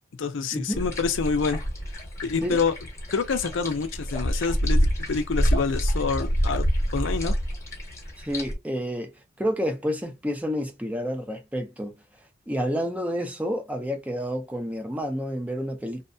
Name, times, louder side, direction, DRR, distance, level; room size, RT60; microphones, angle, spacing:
voice 1, 0.2-1.6 2.2-2.7 3.1-4.8 5.1-6.7 6.9-7.4, left 5 dB, 80° left, 0.5 m, -26 dB
sound 1, 0.7-8.5, equal, 15° left, 1.0 m, -27 dB
voice 2, 8.2-9.1 9.4-11.9 12.5-16.0, equal, 10° right, 0.6 m, -29 dB
2.8 x 2.1 x 2.5 m
head